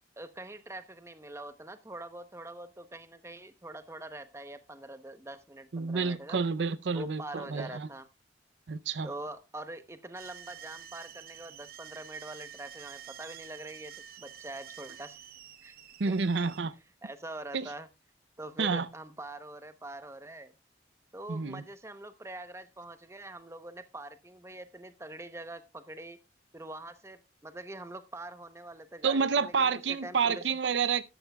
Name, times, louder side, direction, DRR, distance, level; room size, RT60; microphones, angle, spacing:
voice 1, 0.2-6.4 6.9-8.1 9.0-15.2 15.6-15.8 16.1-16.2 17.0-17.9 18.4-20.5 21.1-26.2 26.5-30.5, right 2 dB, 15° right, 0.9 m, -44 dB
voice 2, 5.7-7.9 8.7-9.1 16.0-16.7 17.5-17.7 18.6-18.9 21.3-21.6 29.0-31.0, right 5 dB, 85° right, 0.6 m, -29 dB
sound 1, 10.1-16.6, right 10 dB, 55° right, 0.9 m, -49 dB
13.5 x 12.0 x 2.3 m
head